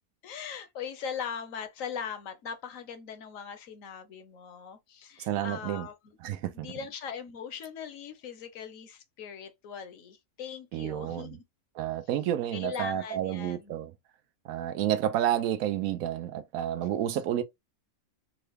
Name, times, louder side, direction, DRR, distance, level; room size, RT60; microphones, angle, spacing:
voice 1, 0.2-6.0 6.5-11.4 12.5-13.8, left 7 dB, 65° left, 1.1 m, -40 dB
voice 2, 5.2-5.9 6.2-6.7 10.7-11.4 11.8-13.9 14.4-17.4, right 11 dB, 75° right, 1.0 m, -30 dB
3.8 x 2.2 x 3.4 m
omnidirectional pair, 1.6 m